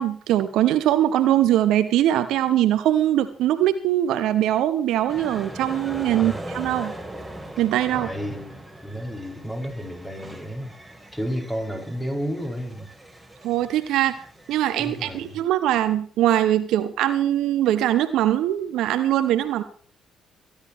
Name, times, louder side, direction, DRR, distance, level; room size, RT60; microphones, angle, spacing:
voice 1, 0.0-6.9 7.6-8.1 13.4-14.2 14.5-19.6, right 12 dB, 70° right, 12 dB, 1.0 m, -22 dB
sound 1, 5.1-15.4, right 1 dB, 5° right, 3.6 m, -40 dB
voice 2, 7.9-10.7 11.1-12.9 14.8-15.4, equal, 10° left, 1 dB, 5.6 m, -32 dB
23.5 x 10.5 x 3.1 m, 0.42 s
hypercardioid pair, 45°, 0 cm